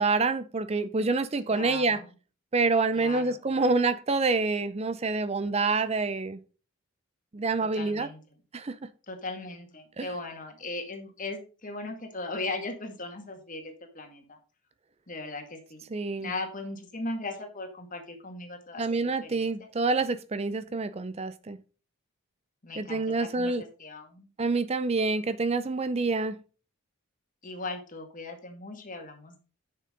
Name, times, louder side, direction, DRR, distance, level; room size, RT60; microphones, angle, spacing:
voice 1, 0.0-2.0 2.5-6.4 7.3-8.1 8.5-8.8 10.0-10.1 15.9-16.3 18.8-21.6 22.8-23.6 24.4-26.4, right 3 dB, 30° right, 0.5 m, -27 dB
voice 2, 1.5-2.1 2.9-3.7 7.6-8.2 9.1-14.4 15.1-15.8 16.2-19.7 22.6-23.5 23.8-24.3 27.4-29.4, left 2 dB, 35° left, 2.0 m, -38 dB
10.0 x 6.6 x 3.8 m
head